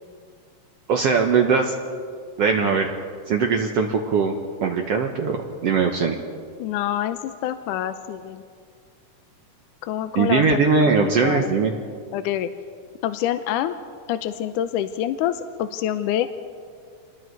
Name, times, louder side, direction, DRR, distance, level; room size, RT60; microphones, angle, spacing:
voice 1, 0.9-1.7 2.4-2.9 3.3-4.3 4.6-6.2 10.2-11.7, right 5 dB, 60° right, 2 dB, 1.8 m, -20 dB
voice 2, 6.6-8.4 9.9-11.5 12.1-12.5 13.0-13.7 14.1-16.3, left 11 dB, 80° left, 9 dB, 2.2 m, -26 dB
27.0 x 20.5 x 4.7 m, 2.1 s
omnidirectional pair, 3.7 m